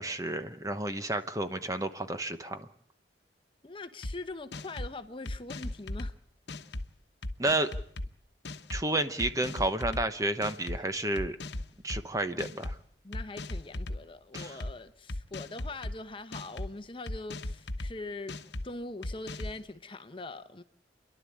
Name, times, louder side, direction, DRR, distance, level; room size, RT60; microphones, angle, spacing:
voice 1, 0.0-2.7 7.4-7.7 8.7-11.4 11.8-12.8 14.3-14.6, right 2 dB, 20° right, 1.0 m, -31 dB
voice 2, 3.6-6.1 13.0-18.4 18.6-20.6, left 2 dB, 30° left, 1.0 m, -42 dB
sound 1, 4.0-4.1 4.5-4.9 5.3-6.1 6.5-6.8 7.2-8.1 8.4-8.8 9.2-10.0 10.4-10.8 11.2-12.0 12.4-12.8 13.1-14.0 14.3-14.7 15.1-15.9 16.3-16.7 17.1-17.9 18.3-18.6 19.0-19.6, left 1 dB, 70° left, 1.1 m, -37 dB
29.5 x 11.5 x 8.6 m
head